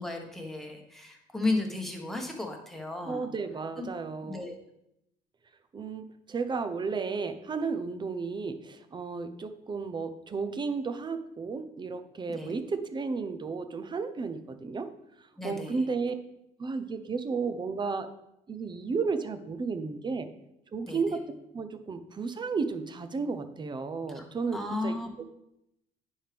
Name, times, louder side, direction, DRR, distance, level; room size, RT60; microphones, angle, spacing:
voice 1, 0.0-3.3 3.8-3.9 4.2-4.5 12.3-12.5 15.4-15.8 20.9-21.0 24.1-24.3 24.5-25.1, left 2 dB, ahead, 1 dB, 1.3 m, -34 dB
voice 2, 3.0-4.5 5.7-14.9 15.4-16.1 16.6-18.1 18.5-20.3 20.7-21.2 21.5-25.3, right 4 dB, 25° right, 10 dB, 0.6 m, -33 dB
9.9 x 4.5 x 3.4 m, 0.82 s
cardioid pair, 110°, 17 cm